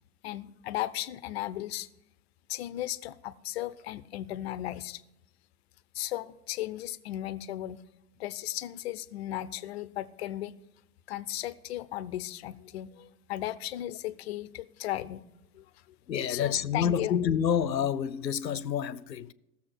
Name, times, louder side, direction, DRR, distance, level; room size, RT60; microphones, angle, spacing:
voice 1, 0.2-1.9 2.5-5.0 5.9-7.8 8.2-10.5 11.1-15.3 15.5-15.7 16.3-17.2, left 14 dB, 40° left, 0.6 m, -36 dB
voice 2, 16.1-19.3, left 8 dB, 90° left, 0.8 m, -28 dB
15.5 x 7.1 x 6.3 m
hypercardioid pair, 120°, 49 cm